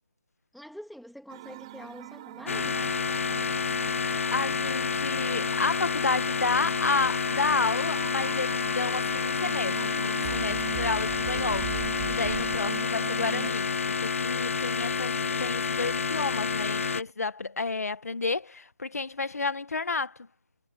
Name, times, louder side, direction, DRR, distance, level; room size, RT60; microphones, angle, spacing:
voice 1, 0.5-2.9, equal, ahead, 1.9 m, -45 dB
sound 1, 1.3-13.5, right 16 dB, 25° right, 3.7 m, -41 dB
sound 2, 2.5-17.0, left 5 dB, 55° left, 0.6 m, -29 dB
voice 2, 4.3-11.7 12.1-20.3, left 3 dB, 75° left, 1.8 m, -31 dB
figure-of-eight pair, 160°, 8 cm